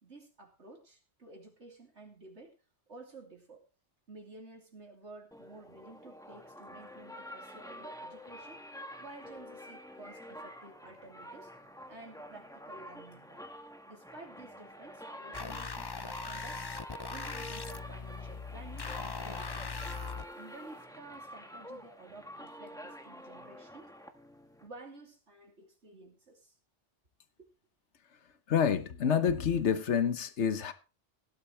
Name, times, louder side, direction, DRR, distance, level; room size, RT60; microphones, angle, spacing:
voice 1, 0.0-2.6 2.9-3.6 4.1-8.6 9.0-11.5 11.9-13.4 13.9-16.6 17.1-19.9 20.3-23.9 24.6-26.6 27.4-27.5, right 2 dB, 75° right, 3.3 m, -52 dB
sound 1, 5.3-24.7, equal, 5° left, 1.5 m, -48 dB
sound 2, 15.3-20.2, left 5 dB, 30° left, 0.4 m, -40 dB
voice 2, 28.5-30.7, left 7 dB, 75° left, 1.4 m, -28 dB
17.0 x 11.5 x 3.3 m
omnidirectional pair, 1.2 m